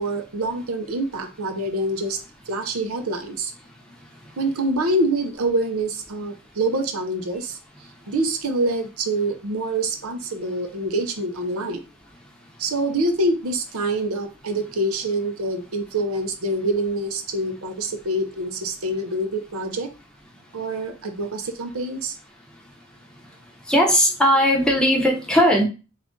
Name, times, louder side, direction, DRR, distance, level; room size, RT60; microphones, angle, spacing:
voice 1, 0.0-2.2 2.5-3.5 4.4-7.6 8.1-11.8 12.6-19.9 20.5-22.2, right 1 dB, 90° right, 4 dB, 0.7 m, -25 dB
voice 2, 23.7-25.6, equal, 5° left, -1 dB, 0.8 m, -18 dB
3.7 x 2.5 x 3.7 m, 0.31 s
head